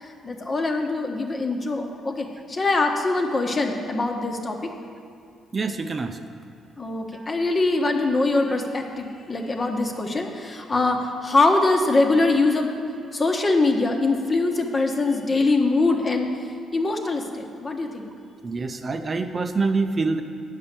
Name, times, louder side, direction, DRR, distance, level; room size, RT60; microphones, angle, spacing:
voice 1, 0.0-4.7 6.8-12.7 13.1-16.3 16.7-18.1, left 3 dB, 35° left, 3 dB, 1.2 m, -23 dB
voice 2, 5.5-6.2 18.4-20.2, right 3 dB, 40° right, 7 dB, 0.6 m, -25 dB
8.4 x 5.5 x 6.7 m, 2.5 s
supercardioid pair, 55°, 0 cm